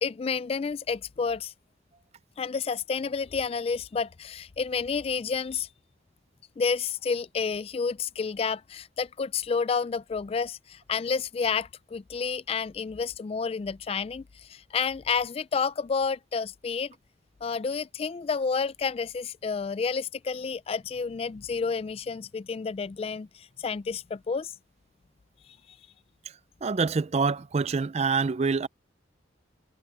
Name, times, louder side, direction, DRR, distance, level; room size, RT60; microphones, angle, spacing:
voice 1, 0.0-1.5 2.4-5.7 6.6-16.9 17.4-24.5, left 5 dB, 30° left, 0.3 m, -30 dB
voice 2, 26.6-28.7, right 4 dB, 35° right, 0.4 m, -26 dB
head